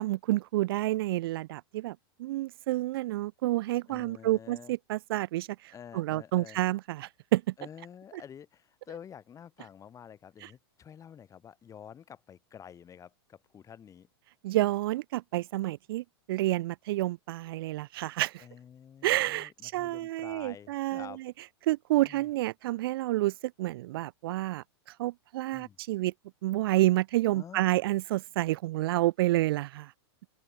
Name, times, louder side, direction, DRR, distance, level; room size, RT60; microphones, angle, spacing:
voice 1, 0.0-7.5 10.4-10.5 14.4-18.4 19.0-21.1 21.6-26.1 26.4-29.9, right 17 dB, 65° right, 0.4 m, -29 dB
voice 2, 3.9-4.7 5.7-6.6 7.6-14.1 18.4-21.2 22.0-22.3 25.5-25.8 27.3-27.6, left 8 dB, 25° left, 3.9 m, -49 dB
open air
hypercardioid pair, 115°, 14 cm